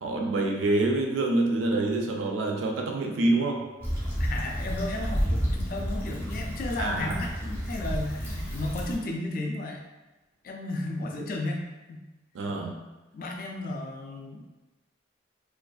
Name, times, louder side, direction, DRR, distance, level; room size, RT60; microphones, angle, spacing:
voice 1, 0.0-3.6 6.8-7.2 12.3-12.7, right 2 dB, 85° right, 1 dB, 0.4 m, -26 dB
Stream / Traffic noise roadway noise / Trickle dribble, 3.8-9.0, equal, 10° left, 0.7 m, -31 dB
voice 2, 4.2-9.8 10.4-12.0 13.1-14.6, left 2 dB, 50° left, 1 dB, 0.3 m, -34 dB
2.5 x 2.3 x 2.3 m, 1.1 s
head